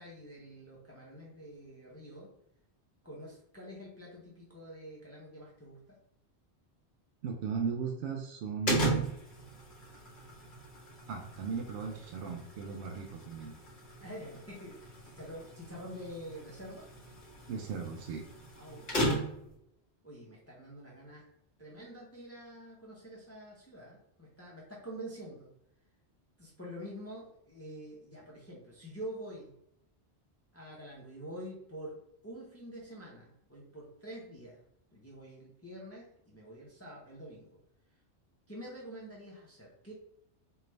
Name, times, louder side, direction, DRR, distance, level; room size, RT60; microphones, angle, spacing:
voice 1, 0.0-2.3 3.0-6.0 14.0-16.9 18.5-19.2 20.0-21.3 21.6-25.5 26.4-29.6 30.5-32.0 32.2-34.6 34.9-37.6 38.5-39.9, equal, 15° left, -4 dB, 0.7 m, -47 dB
voice 2, 7.2-9.1 11.1-13.6 17.5-18.2, right 5 dB, 75° right, 2 dB, 0.9 m, -37 dB
sound 1, 8.7-19.5, right 1 dB, 45° left, 1.3 m, -37 dB
4.5 x 2.3 x 3.2 m, 0.77 s
omnidirectional pair, 1.1 m